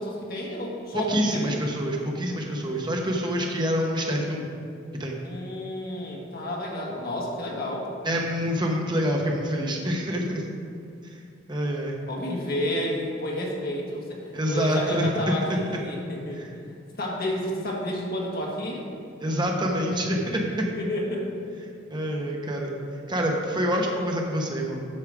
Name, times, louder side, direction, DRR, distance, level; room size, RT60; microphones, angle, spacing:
voice 1, 0.0-1.6 5.2-7.9 12.1-16.4 17.0-18.8 20.6-21.3, left 1 dB, 50° left, -2 dB, 1.5 m, -30 dB
voice 2, 0.9-4.5 5.0-5.1 8.0-10.4 11.5-12.0 14.3-15.6 16.3-16.5 19.2-20.4 21.9-22.7 23.1-24.8, equal, 25° right, 0 dB, 0.9 m, -26 dB
8.6 x 6.5 x 4.8 m, 2.4 s
head